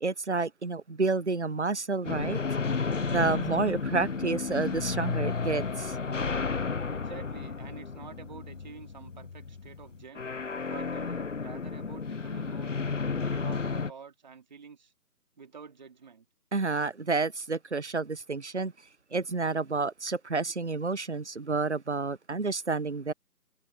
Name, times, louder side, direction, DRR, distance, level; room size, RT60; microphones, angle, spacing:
voice 1, 0.0-2.4 3.1-6.0 16.5-18.7 19.1-23.1, right 3 dB, 45° right, 0.6 m, -30 dB
sound 1, 2.0-13.9, left 4 dB, 50° left, 0.6 m, -32 dB
voice 2, 6.9-10.3 10.7-12.7 13.2-14.9 15.4-16.3, right 6 dB, 25° right, 3.0 m, -48 dB
figure-of-eight pair, 165°, 48 cm